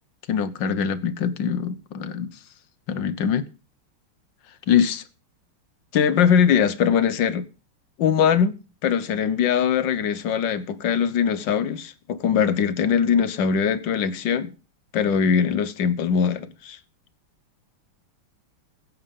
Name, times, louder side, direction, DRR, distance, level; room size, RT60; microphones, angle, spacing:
voice 1, 0.3-2.3 2.9-3.4 4.7-5.0 5.9-7.5 8.0-8.6 8.8-14.5 14.9-16.8, left 7 dB, 60° left, 1.5 m, -22 dB
16.0 x 9.3 x 5.3 m
omnidirectional pair, 2.4 m